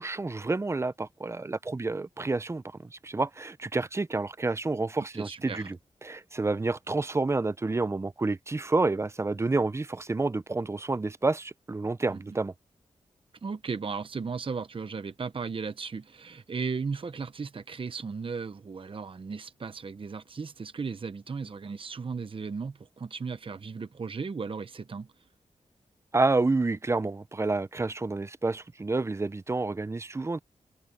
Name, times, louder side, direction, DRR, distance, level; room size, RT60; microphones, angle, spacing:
voice 1, 0.0-5.8 6.0-12.5 26.1-30.4, right 3 dB, 20° right, 0.6 m, -29 dB
voice 2, 5.1-5.7 12.1-12.2 13.4-25.1, right 5 dB, 45° right, 0.9 m, -36 dB
cardioid pair, 80°, 13 cm